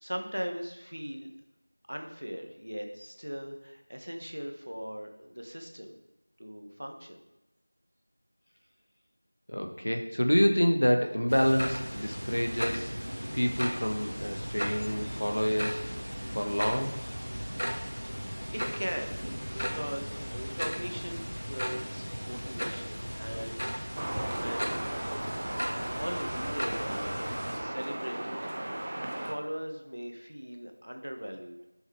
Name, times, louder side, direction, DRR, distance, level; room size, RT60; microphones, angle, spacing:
voice 1, 0.0-1.3 1.9-6.0 6.4-7.2 18.5-24.0 24.3-24.8 26.0-27.2 27.5-28.5 28.8-31.6, equal, 50° right, 4 dB, 1.5 m, -39 dB
voice 2, 9.5-13.0 13.3-15.8 16.2-17.0, equal, 65° left, 4 dB, 1.6 m, -27 dB
sound 1, 11.3-27.6, equal, 80° right, 1.9 m, -36 dB
sound 2, 24.0-29.3, right 1 dB, 15° right, 0.5 m, -36 dB
12.0 x 7.2 x 3.5 m, 0.98 s
figure-of-eight pair, 180°, 0 cm